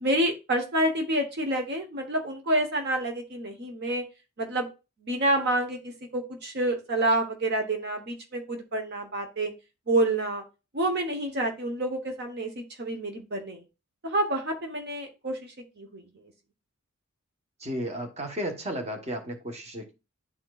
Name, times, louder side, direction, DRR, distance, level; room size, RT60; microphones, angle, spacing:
voice 1, 0.0-4.0 4.4-4.7 5.0-5.8 6.1-9.5 9.9-10.4 10.7-13.6 14.0-16.0, right 1 dB, 50° right, 1.1 m, -28 dB
voice 2, 17.6-19.9, equal, 30° right, 1.2 m, -33 dB
11.0 x 4.4 x 2.4 m
head